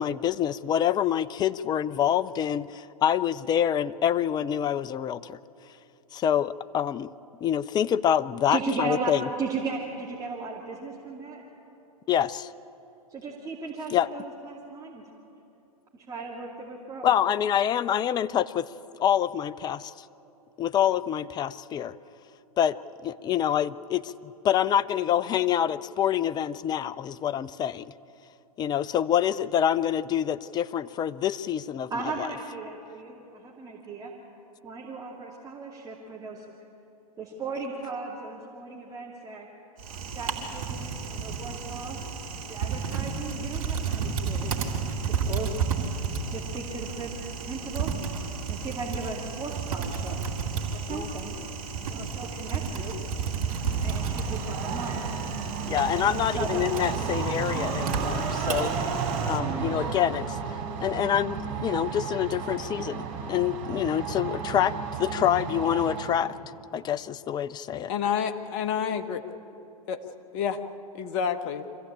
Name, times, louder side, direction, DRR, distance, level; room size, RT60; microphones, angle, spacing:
voice 1, 0.0-5.4 6.1-7.1 7.4-9.3 12.1-12.5 13.9-14.1 17.0-18.7 19.0-19.9 20.6-22.0 22.6-22.8 23.0-27.9 28.6-31.9 32.2-32.3 50.9-51.1 55.7-58.7 59.2-60.4 60.8-64.7 65.0-66.3 66.7-67.9, left 10 dB, 20° left, 17 dB, 0.5 m, -26 dB
voice 2, 8.5-9.1 9.4-11.4 13.1-15.0 15.9-17.1 31.9-34.1 34.6-36.4 37.2-39.5 40.1-42.0 42.5-44.6 45.1-45.6 46.3-47.9 48.5-50.2 50.7-51.5 51.9-53.0 53.2-53.3 53.8-55.1 56.0-56.7, right 4 dB, 20° right, -3 dB, 2.6 m, -36 dB
Typing, 39.8-59.4, right 5 dB, 65° right, 3.1 m, -32 dB
sound 1, 53.4-66.3, right 6 dB, 50° right, 5.4 m, -32 dB
voice 3, 67.9-69.2 69.9-70.0 70.3-70.6 70.9-71.6, left 8 dB, 45° left, 8 dB, 1.5 m, -28 dB
25.0 x 15.5 x 8.7 m, 3.0 s
hypercardioid pair, 105°, 19 cm